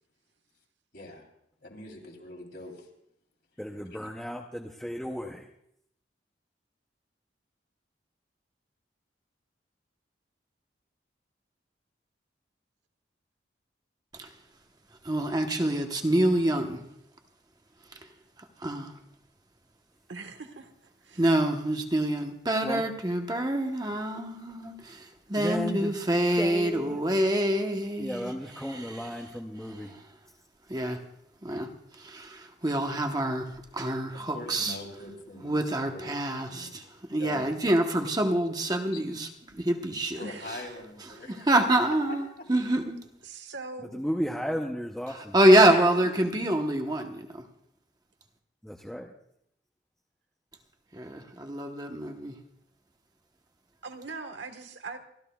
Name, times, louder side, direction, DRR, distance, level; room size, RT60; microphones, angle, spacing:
voice 1, 0.9-1.3 1.6-2.9 3.9-4.0 34.1-35.6 35.9-36.1 36.4-36.7 37.2-37.7 38.9-39.0 40.2-41.5 41.9-42.5, left 2 dB, 60° left, 3.3 m, -43 dB
voice 2, 3.6-5.5 22.6-22.8 25.4-25.9 26.4-27.0 28.0-29.9 43.9-45.3 48.6-49.1, equal, 5° left, 0.6 m, -34 dB
voice 3, 15.0-16.8 17.9-18.0 18.6-18.9 21.2-29.2 29.6-30.1 30.7-31.0 31.4-34.8 35.4-36.8 37.1-40.2 40.5-40.6 41.3-43.1 45.1-47.4 50.9-52.4, right 1 dB, 20° right, 1.0 m, -26 dB
voice 4, 20.1-20.7 21.0-21.2 40.2-40.5 41.2-41.4 43.2-44.0 45.6-46.1 53.8-55.0, right 3 dB, 80° right, 1.4 m, -41 dB
28.5 x 13.5 x 2.3 m
head